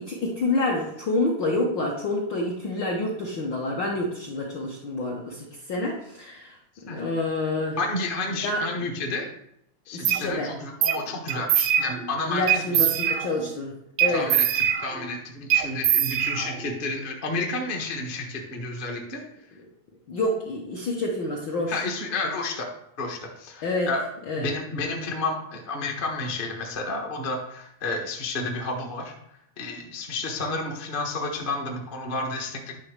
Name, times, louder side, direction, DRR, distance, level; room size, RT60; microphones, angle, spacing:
voice 1, 0.0-6.6 6.9-7.8 8.4-8.9 9.9-10.5 12.3-13.7 14.0-14.3 20.1-21.8 23.6-23.9 24.3-24.5, left 2 dB, 65° left, -2 dB, 1.1 m, -28 dB
voice 2, 7.8-9.3 9.9-12.9 14.1-19.2 21.7-22.7 23.0-24.0 24.3-29.1 29.6-32.7, left 3 dB, 45° left, -1 dB, 0.6 m, -31 dB
sound 1, 10.1-10.2 10.8-11.0 11.3-12.1 12.5-13.5 14.0-15.1 15.5-16.7, right 10 dB, 75° right, 1.3 m, -23 dB
10.5 x 3.5 x 6.5 m, 0.77 s
omnidirectional pair, 3.4 m